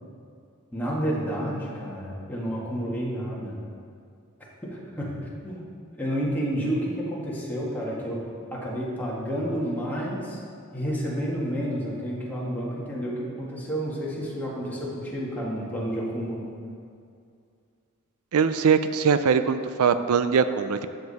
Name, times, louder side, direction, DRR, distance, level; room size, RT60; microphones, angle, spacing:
voice 1, 0.7-3.6 4.6-5.1 5.4-5.6 6.0-8.2 8.5-10.4 10.7-16.5, equal, 10° left, -6 dB, 1.8 m, -30 dB
voice 2, 18.3-20.9, right 6 dB, 75° right, 11 dB, 0.4 m, -22 dB
13.0 x 6.7 x 4.2 m, 2.3 s
head